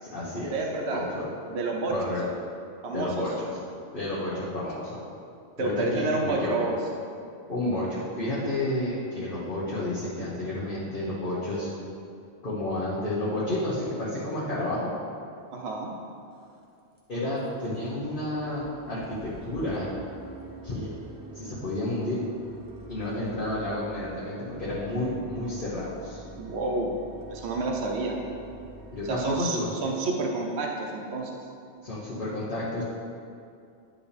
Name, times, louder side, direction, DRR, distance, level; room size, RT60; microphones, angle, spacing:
voice 1, 0.0-0.6 0.9-1.2 1.9-2.2 2.9-3.3 3.9-5.0 5.6-6.5 7.5-11.7 12.4-14.9 17.1-19.9 20.6-20.9 21.3-22.2 22.9-26.2 28.9-29.7 31.8-32.8, left 1 dB, 50° left, -9 dB, 1.3 m, -31 dB
voice 2, 0.5-1.0 1.5-2.1 2.8-3.2 5.6-6.7 15.5-15.9 26.4-27.0 27.3-28.2 29.1-31.4, right 3 dB, 80° right, 0 dB, 1.0 m, -29 dB
sound 1, 15.7-15.8 16.3-16.6 17.0-17.1 17.4-17.5 17.7-29.3, right 2 dB, 20° right, 0.8 m, -46 dB
10.0 x 5.0 x 3.4 m, 2.5 s
omnidirectional pair, 1.1 m